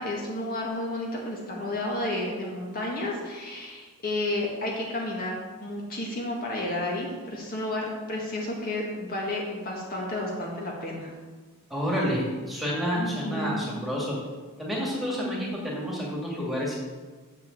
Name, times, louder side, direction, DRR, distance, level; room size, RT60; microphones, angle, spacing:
voice 1, 0.0-5.3 5.6-11.1 12.9-13.6, left 1 dB, 40° left, -2 dB, 1.6 m, -31 dB
voice 2, 11.7-14.2 14.6-16.8, equal, ahead, -4 dB, 2.4 m, -29 dB
7.1 x 6.9 x 7.7 m, 1.4 s
head